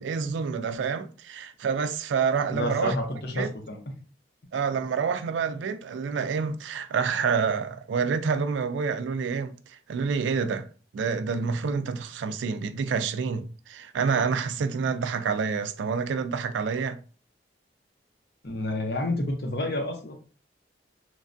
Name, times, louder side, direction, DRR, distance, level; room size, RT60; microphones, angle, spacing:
voice 1, 0.0-2.9 3.3-3.5 4.5-10.7 10.9-17.0, right 5 dB, 85° right, 0.3 m, -28 dB
voice 2, 2.5-3.8 18.4-20.1, left 1 dB, 60° left, 0.7 m, -29 dB
3.3 x 2.2 x 2.5 m
head